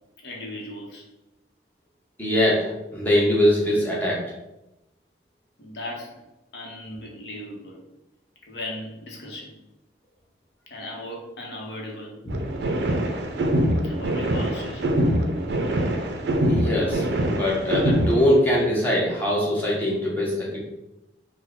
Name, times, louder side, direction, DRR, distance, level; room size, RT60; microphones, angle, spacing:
voice 1, 0.2-1.1 5.6-6.2 6.5-7.8 8.5-9.5 10.7-12.1 13.8-14.9, left 1 dB, 75° left, -1 dB, 0.9 m, -37 dB
voice 2, 2.2-4.2 16.5-20.6, equal, 10° left, -5 dB, 0.8 m, -22 dB
sound 1, 12.3-18.3, right 1 dB, 70° right, 0.4 m, -24 dB
3.6 x 2.2 x 3.5 m, 0.93 s
head